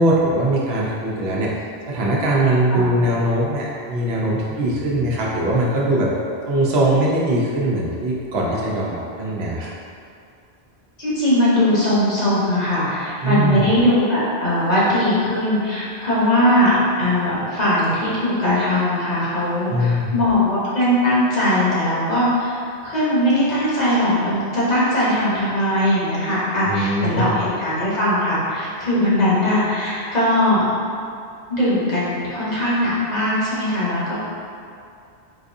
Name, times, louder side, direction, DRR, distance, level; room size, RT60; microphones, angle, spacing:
voice 1, 0.0-1.5 1.9-6.1 6.5-9.7 13.2-13.7 19.7-20.1 26.6-27.4, right 1 dB, 85° right, -4 dB, 0.9 m, -21 dB
voice 2, 11.0-30.7 31.5-34.1, left 1 dB, 45° left, -9 dB, 1.0 m, -20 dB
3.9 x 2.5 x 2.6 m, 2.4 s
omnidirectional pair, 1.0 m